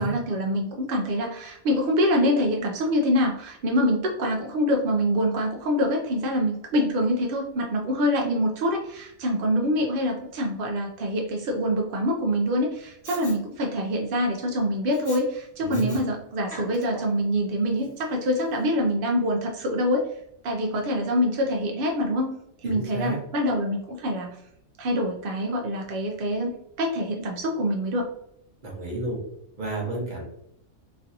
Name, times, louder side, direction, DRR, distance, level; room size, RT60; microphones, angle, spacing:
voice 1, 0.0-20.0 20.4-22.3 22.6-24.3 24.8-28.1, equal, 70° right, 1 dB, 0.5 m, -25 dB
Respiratory sounds, 13.0-13.4 14.9-15.2 15.7-16.0 16.4-17.2 17.8-17.9, equal, 20° left, 1.1 m, -41 dB
voice 2, 15.6-16.0 22.6-23.2 28.6-29.2 29.6-30.2, right 2 dB, 40° right, -2 dB, 1.0 m, -31 dB
3.2 x 2.6 x 2.6 m, 0.75 s
omnidirectional pair, 1.5 m